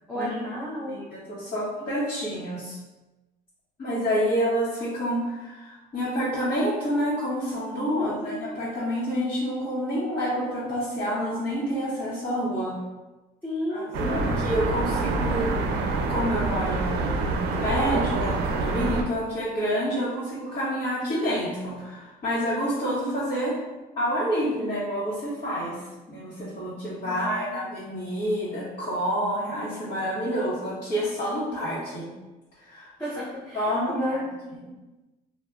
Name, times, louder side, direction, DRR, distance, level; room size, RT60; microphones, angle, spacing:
voice 1, 0.1-1.0 7.9-8.4 13.4-14.3 19.9-20.0 27.1-27.6 33.0-34.5, equal, 10° left, -7 dB, 0.6 m, -33 dB
voice 2, 0.8-2.8 3.8-12.8 13.7-15.5 16.1-23.6 24.0-32.1 32.6-32.9 33.5-34.2 34.5-34.6, equal, 50° left, -11 dB, 1.0 m, -28 dB
sound 1, 13.9-19.0, right 3 dB, 75° right, 0.4 m, -26 dB
3.2 x 2.1 x 2.4 m, 1.1 s
cardioid pair, 110°, 17 cm